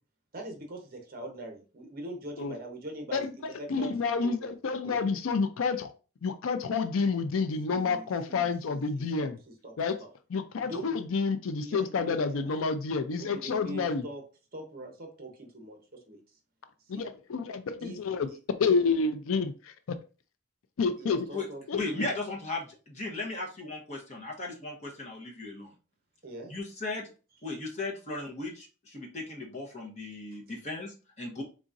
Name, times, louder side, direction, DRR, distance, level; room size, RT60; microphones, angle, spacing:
voice 1, 0.3-4.5 4.8-5.0 7.7-9.3 9.6-9.7 10.0-10.1 10.6-11.0 11.6-12.5 13.2-14.2 14.5-15.8 16.1-16.2 16.9-17.1 17.8-18.0 18.3-18.4 21.0-21.6 21.9-22.2 26.2-26.5 30.5-30.6 31.4-31.5, right 1 dB, 45° right, 0.9 m, -42 dB
voice 2, 3.7-5.9 6.2-9.4 9.8-10.0 10.3-14.0 16.9-18.3 18.6-19.5 20.8-21.3 21.7-22.1, left 4 dB, 75° left, 0.4 m, -29 dB
voice 3, 21.7-25.7 26.5-27.0 27.4-31.4, left 2 dB, 30° left, 1.0 m, -36 dB
4.0 x 3.6 x 2.5 m
head